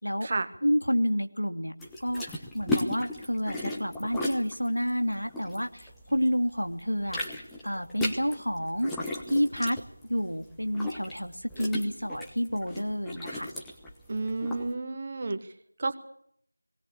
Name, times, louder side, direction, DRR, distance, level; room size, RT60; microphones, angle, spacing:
voice 1, 0.6-1.7 2.0-8.9 9.3-9.8 10.0-13.5, equal, 90° left, 6 dB, 2.6 m, -29 dB
sound 1, 1.8-6.3 6.6-14.7, left 1 dB, ahead, 1.1 m, -36 dB
voice 2, 14.1-15.4 15.8-15.9, right 3 dB, 25° right, 9 dB, 1.4 m, -31 dB
19.0 x 19.0 x 8.5 m, 0.67 s
figure-of-eight pair, 170°, 0 cm